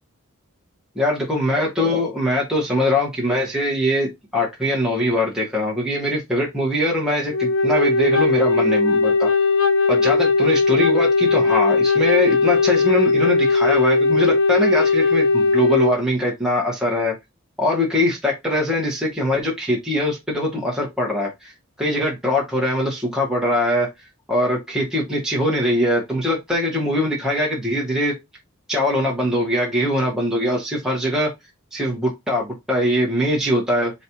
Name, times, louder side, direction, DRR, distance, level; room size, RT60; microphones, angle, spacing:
voice 1, 1.0-9.3 9.9-17.1 17.6-21.5 21.8-23.9 24.3-28.1 28.7-31.3 31.7-33.9, left 1 dB, 5° right, 1.0 m, -22 dB
Wind instrument woodwind instrument, 7.3-16.0, left 3 dB, 70° left, 0.5 m, -18 dB
4.1 x 2.4 x 4.4 m
head